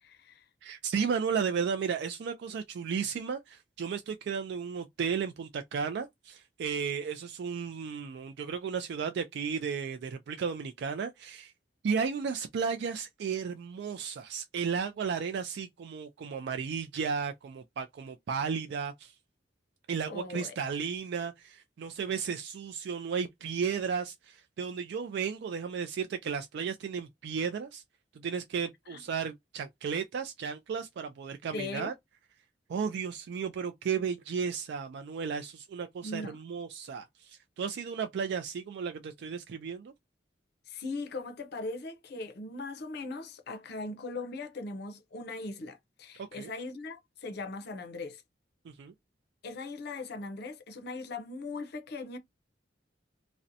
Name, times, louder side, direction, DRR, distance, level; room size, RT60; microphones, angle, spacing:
voice 1, 0.0-0.5 20.1-20.5 28.9-29.0 31.5-31.9 36.0-36.4 40.7-48.2 49.4-52.2, left 3 dB, 60° left, 0.5 m, -39 dB
voice 2, 0.6-11.5 11.8-19.1 19.9-27.8 28.1-31.9 32.7-39.9 46.2-46.5 48.7-48.9, right 6 dB, 65° right, 0.3 m, -34 dB
2.5 x 2.1 x 2.6 m
head